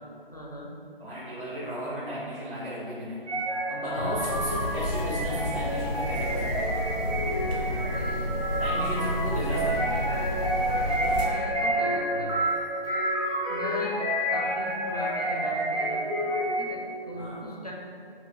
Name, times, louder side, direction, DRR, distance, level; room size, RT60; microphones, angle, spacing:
voice 1, 0.3-0.7 3.8-4.2 7.5-8.3 8.5-9.3 10.7-12.4 13.5-14.0 14.3-17.7, equal, 40° left, -4 dB, 0.4 m, -39 dB
voice 2, 1.0-3.2 3.7-6.7 8.6-10.0 17.1-17.5, equal, 65° right, -9 dB, 1.0 m, -34 dB
sound 1, 3.3-16.9, right 1 dB, 35° right, 0.8 m, -29 dB
sound 2, 4.1-11.3, left 1 dB, 85° left, 0.7 m, -31 dB
5.6 x 2.1 x 2.2 m, 2.4 s
figure-of-eight pair, 175°, 30 cm